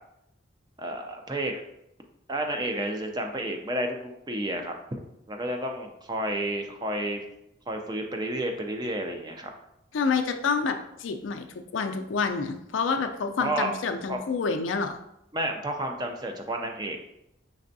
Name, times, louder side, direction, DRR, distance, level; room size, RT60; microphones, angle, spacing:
voice 1, 0.8-1.6 2.3-4.7 5.3-7.2 7.7-9.5 13.4-13.7 14.1-14.2 15.3-17.0, right 1 dB, 20° right, 3 dB, 0.4 m, -31 dB
voice 2, 9.9-15.0, left 5 dB, 80° left, 6 dB, 0.4 m, -28 dB
5.4 x 3.3 x 2.6 m, 0.81 s
head